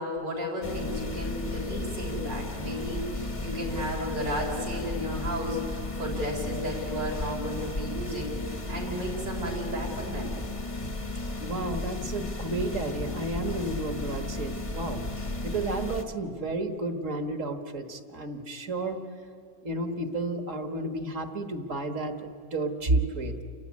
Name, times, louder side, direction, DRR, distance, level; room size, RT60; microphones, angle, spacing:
voice 1, 0.0-10.4, equal, 90° right, -4 dB, 5.3 m, -33 dB
sound 1, 0.6-16.0, left 2 dB, 20° left, 1.0 m, -34 dB
voice 2, 11.4-15.0 15.4-19.0 19.6-23.4, right 2 dB, 50° right, 7 dB, 1.8 m, -31 dB
28.5 x 15.0 x 9.7 m, 2.4 s
omnidirectional pair, 1.8 m